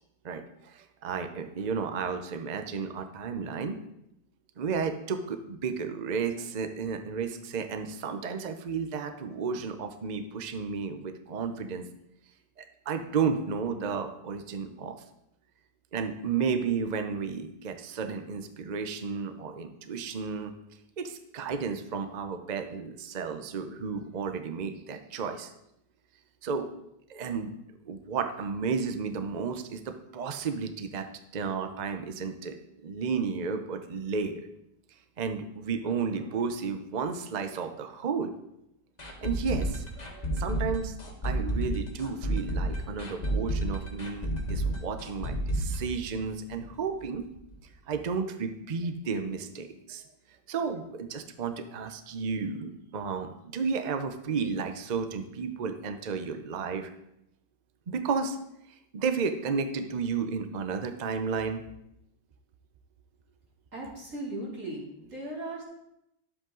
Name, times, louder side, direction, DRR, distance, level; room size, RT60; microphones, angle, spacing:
voice 1, 0.2-3.8 4.6-11.9 12.6-15.0 15.9-20.5 21.0-25.5 26.4-26.7 27.1-27.5 27.9-31.1 31.3-32.6 32.8-34.5 35.2-38.3 39.2-41.0 41.2-47.3 47.9-50.0 50.5-56.9 57.9-58.4 58.9-61.6, right 5 dB, 80° right, 8 dB, 0.4 m, -32 dB
sound 1, 39.0-46.7 47.0-47.1 47.5-47.6, right 1 dB, 25° left, 1.4 m, -31 dB
voice 2, 63.7-65.6, right 1 dB, 45° right, -5 dB, 3.6 m, -37 dB
11.5 x 7.8 x 3.9 m, 0.80 s
omnidirectional pair, 1.9 m